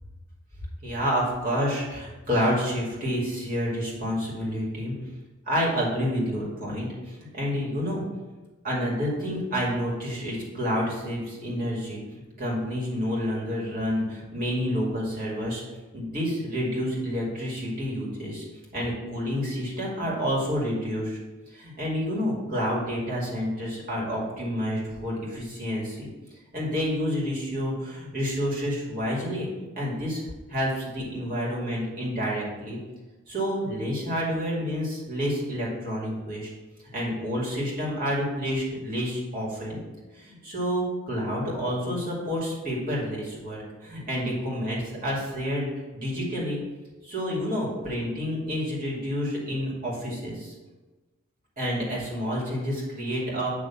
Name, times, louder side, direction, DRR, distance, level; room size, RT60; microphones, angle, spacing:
voice 1, 0.8-4.9 5.5-8.0 8.6-12.0 12.4-15.6 15.9-18.4 18.7-21.2 21.5-26.1 26.5-29.5 29.7-32.8 33.3-36.5 36.9-39.8 40.1-46.6 47.0-50.5 51.6-53.5, equal, 40° right, -4 dB, 2.2 m, -29 dB
9.1 x 3.2 x 5.8 m, 1.2 s
head